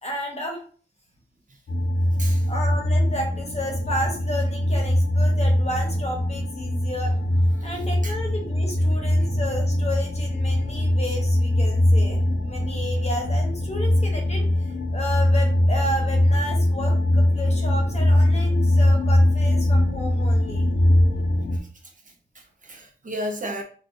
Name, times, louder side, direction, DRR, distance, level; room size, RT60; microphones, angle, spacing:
voice 1, 0.0-0.6 2.5-7.1 7.6-20.7, equal, 35° left, 0.9 m, -32 dB
sound 1, 1.7-21.6, left 1 dB, 60° left, 0.7 m, -21 dB
voice 2, 1.9-2.5 7.6-7.7 8.0-8.1 21.2-21.3 21.5-23.6, equal, 40° right, 0.6 m, -35 dB
4.2 x 2.5 x 2.6 m
wide cardioid pair, 130°, 20 cm